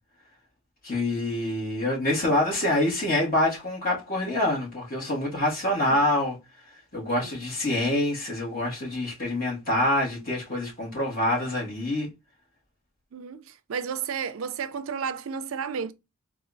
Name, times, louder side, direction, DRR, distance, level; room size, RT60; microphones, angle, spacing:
voice 1, 0.8-6.4 6.9-12.1, left 1 dB, 40° left, 1.6 m, -26 dB
voice 2, 13.1-15.9, right 6 dB, 70° right, 0.4 m, -32 dB
4.0 x 2.4 x 2.5 m
head